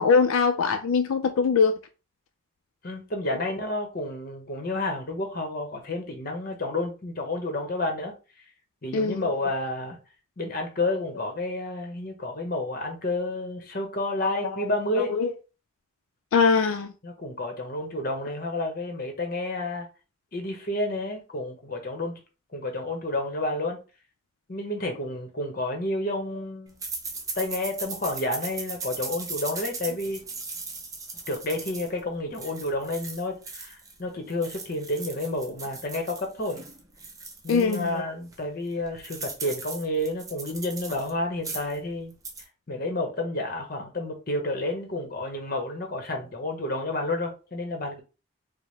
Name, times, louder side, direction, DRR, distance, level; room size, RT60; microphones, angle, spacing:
voice 1, 0.0-1.8 8.9-9.3 14.2-14.7 15.0-15.3 16.3-16.9 37.5-38.0, left 5 dB, 85° left, 0.4 m, -22 dB
voice 2, 2.8-8.1 8.8-10.0 10.4-15.1 17.0-19.9 20.3-22.2 22.5-23.8 24.5-26.7 27.3-30.2 31.3-36.6 37.4-42.1 42.7-48.0, left 1 dB, 45° left, 0.9 m, -30 dB
sound 1, 26.8-34.0 34.3-37.9 38.3-38.4 38.7-41.1 41.4-41.8 42.1-42.4, right 4 dB, 15° right, 0.6 m, -38 dB
4.6 x 2.1 x 3.2 m
head